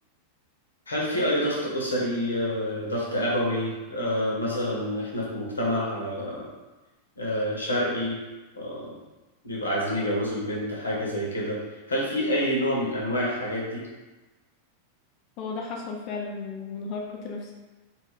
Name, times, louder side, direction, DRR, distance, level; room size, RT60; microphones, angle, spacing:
voice 1, 0.9-6.4 7.2-8.2 8.5-8.9 9.4-11.6 11.9-13.8, equal, 75° left, -4 dB, 0.7 m, -27 dB
voice 2, 15.4-17.5, left 4 dB, 40° left, 0 dB, 0.4 m, -34 dB
2.4 x 2.2 x 3.4 m, 1.2 s
figure-of-eight pair, 90°, 0 cm